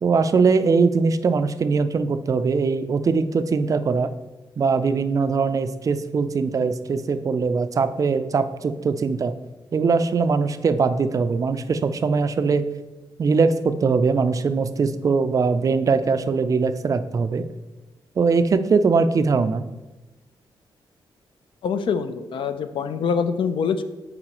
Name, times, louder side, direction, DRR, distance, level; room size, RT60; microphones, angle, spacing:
voice 1, 0.0-4.1 4.6-9.3 9.7-12.7 13.2-17.5 18.2-19.6, right 4 dB, 40° right, 11 dB, 0.4 m, -21 dB
voice 2, 21.6-23.8, left 6 dB, 70° left, 10 dB, 0.5 m, -24 dB
8.7 x 4.0 x 3.0 m, 1.1 s
wide cardioid pair, 120°, 9 cm